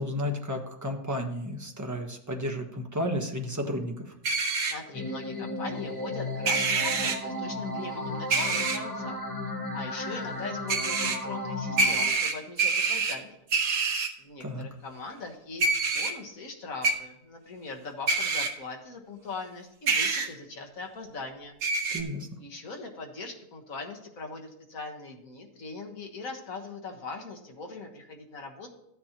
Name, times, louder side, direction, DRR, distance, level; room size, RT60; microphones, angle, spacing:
voice 1, 0.0-4.1 14.4-14.7 21.9-22.4, equal, 15° right, 2 dB, 1.0 m, -32 dB
sound 1, 4.2-4.7 6.5-7.2 8.3-8.8 10.7-11.2 11.8-13.1 13.5-14.1 15.6-16.1 16.8-16.9 18.1-18.5 19.9-20.3 21.6-22.0, right 4 dB, 80° right, 1.8 m, -26 dB
voice 2, 4.4-9.2 9.7-13.4 14.2-21.6 22.4-28.7, left 3 dB, 60° left, 2 dB, 1.8 m, -41 dB
sound 2, 4.9-12.1, left 1 dB, 15° left, 1.3 m, -34 dB
14.0 x 9.4 x 3.0 m, 0.79 s
omnidirectional pair, 1.6 m